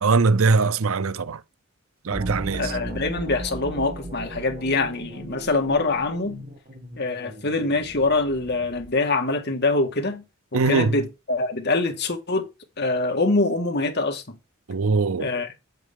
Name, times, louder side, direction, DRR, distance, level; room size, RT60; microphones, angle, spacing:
voice 1, 0.0-1.4 2.0-2.7 10.5-11.0 14.7-15.3, right 4 dB, 70° right, 0.6 m, -21 dB
sound 1, 2.1-9.0, right 1 dB, 40° right, 2.0 m, -36 dB
voice 2, 2.5-6.4 7.0-10.2 10.5-12.5 12.8-14.4 15.2-15.5, left 3 dB, 50° left, 1.8 m, -24 dB
8.2 x 7.8 x 3.6 m
head